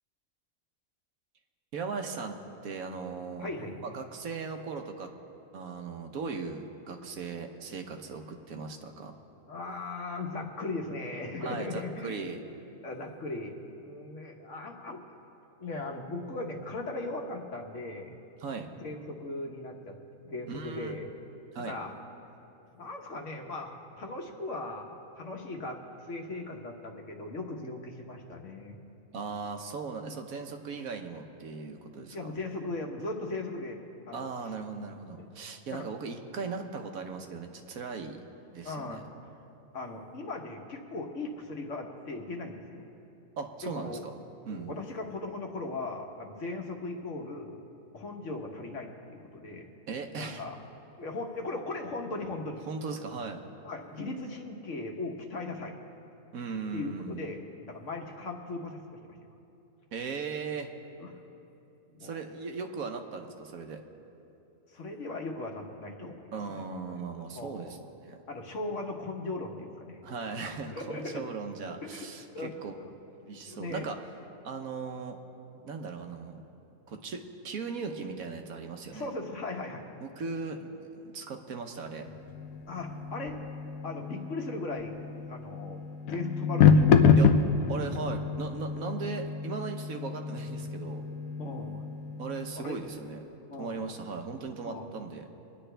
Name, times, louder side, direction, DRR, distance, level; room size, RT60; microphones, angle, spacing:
voice 1, 1.7-3.5 3.8-5.1 5.5-9.1 11.4-12.4 18.4-18.7 20.5-21.0 21.5-21.8 29.1-32.3 34.1-38.2 38.5-39.0 43.4-44.1 44.5-44.8 49.9-50.4 52.7-53.4 56.3-57.3 59.9-60.7 62.0-63.8 66.3-67.8 68.1-68.2 70.0-72.7 73.2-74.0 74.4-75.2 75.7-76.4 76.9-79.1 80.0-82.1 87.2-87.3 87.7-91.1 92.2-93.2 93.6-95.3, right 4 dB, 80° right, 4 dB, 1.4 m, -38 dB
voice 2, 3.4-3.8 9.5-12.2 12.8-15.0 15.6-18.2 18.8-20.0 20.2-21.1 21.6-21.9 22.7-28.8 30.0-30.2 32.1-34.3 35.2-35.3 35.7-35.9 38.6-39.0 39.7-42.8 43.6-44.0 44.4-47.6 47.9-49.7 50.2-50.6 51.0-52.6 53.6-55.7 56.7-57.4 57.7-59.2 61.0-61.1 61.9-62.2 64.7-66.2 67.3-67.7 68.3-70.0 70.7-71.3 71.8-72.1 72.3-72.9 73.4-73.9 78.9-79.9 82.7-83.4 83.8-84.9 85.3-85.8 86.1-87.0 89.9-90.1 91.4-91.8 92.6-92.8 93.5-93.8 94.6-94.9, left 2 dB, 60° left, 2 dB, 1.5 m, -38 dB
sound 1, 82.1-92.9, left 6 dB, 85° left, 1.1 m, -27 dB
24.5 x 9.9 x 3.4 m, 2.9 s
omnidirectional pair, 1.5 m